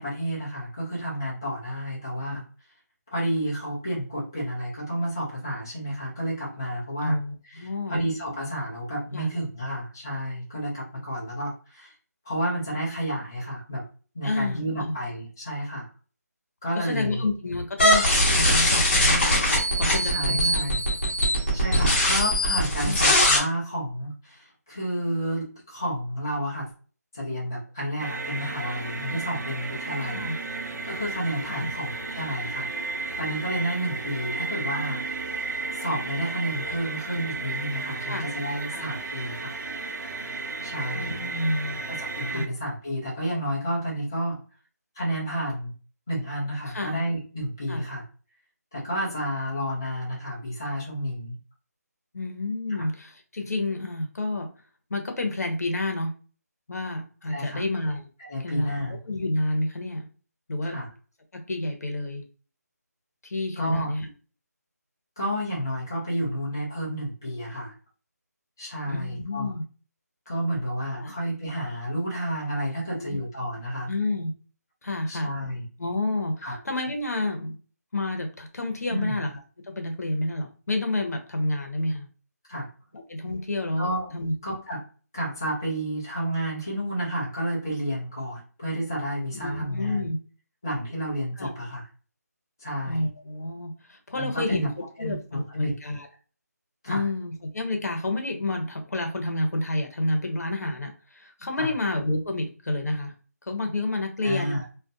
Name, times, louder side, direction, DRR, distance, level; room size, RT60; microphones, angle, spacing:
voice 1, 0.0-2.4 3.1-7.2 7.4-11.9 12.2-13.8 14.1-15.9 16.6-17.2 18.4-18.6 20.0-20.8 21.5-26.7 27.1-30.2 30.5-32.7 33.2-35.0 35.7-39.5 40.6-41.1 41.9-44.4 45.0-45.7 46.1-48.0 48.7-51.4 52.8-52.9 57.3-57.6 58.2-59.0 60.6-60.9 63.6-63.9 65.2-67.7 68.6-69.5 70.3-73.9 75.1-75.6 76.4-76.6 78.9-79.2 82.5-82.7 83.8-84.1 84.4-84.8 85.1-90.1 90.6-91.9 92.6-93.1 94.1-94.7 95.0-95.7 96.8-97.0 101.6-101.7 104.2-104.6, equal, 10° left, -6 dB, 0.3 m, -31 dB
voice 2, 7.0-8.0 9.1-9.3 14.2-14.9 16.8-19.2 19.8-20.6 22.8-23.0 30.0-30.4 31.5-31.7 38.0-38.3 38.7-38.9 40.9-41.8 42.3-42.5 46.7-47.1 47.7-47.8 52.1-54.5 54.9-56.1 56.7-58.1 58.4-58.7 59.1-60.1 60.5-60.8 61.3-62.2 63.2-64.1 68.9-69.6 70.9-71.1 72.9-73.2 73.9-74.3 74.8-75.3 75.8-77.5 77.9-79.3 79.7-82.1 82.9-84.3 89.3-90.2 91.4-91.5 92.8-96.1 96.9-103.1 103.5-104.6, left 2 dB, 65° left, 4 dB, 0.8 m, -29 dB
sound 1, 17.8-23.4, left 1 dB, 40° left, 0.9 m, -21 dB
sound 2, 28.0-42.5, right 3 dB, 85° right, 0.6 m, -34 dB
2.4 x 2.2 x 2.6 m, 0.37 s
figure-of-eight pair, 175°, 9 cm